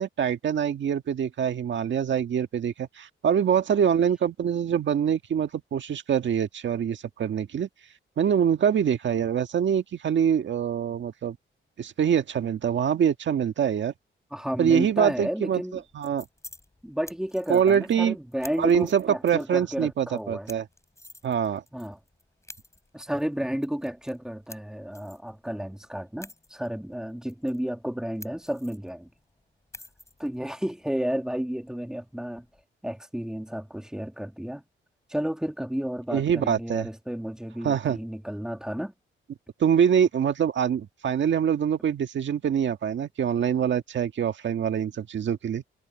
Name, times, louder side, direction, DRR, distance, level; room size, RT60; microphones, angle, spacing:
voice 1, 0.0-7.7 8.2-11.4 11.8-13.9 14.6-16.2 17.5-18.2 18.6-20.6 21.2-21.6 36.1-36.9 37.6-38.0 39.6-45.6, right 8 dB, 65° right, 1.7 m, -24 dB
voice 2, 14.3-15.8 16.8-20.5 21.7-22.0 22.9-29.1 30.2-32.5 32.8-34.6 35.1-38.9, equal, 5° right, 2.0 m, -32 dB
sound 1, 15.7-32.6, left 2 dB, 15° left, 6.6 m, -52 dB
wide cardioid pair, 130°, 21 cm